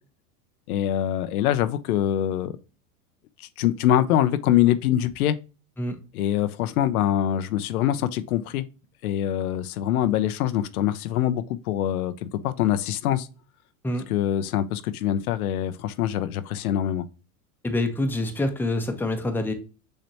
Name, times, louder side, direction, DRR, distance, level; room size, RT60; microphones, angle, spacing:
voice 1, 0.7-2.5 3.4-5.4 6.1-8.6 9.0-13.3 14.1-17.0, left 11 dB, 85° left, 0.6 m, -24 dB
voice 2, 17.6-19.5, left 1 dB, 5° left, 0.7 m, -26 dB
6.4 x 2.9 x 2.8 m
hypercardioid pair, 110°, 42 cm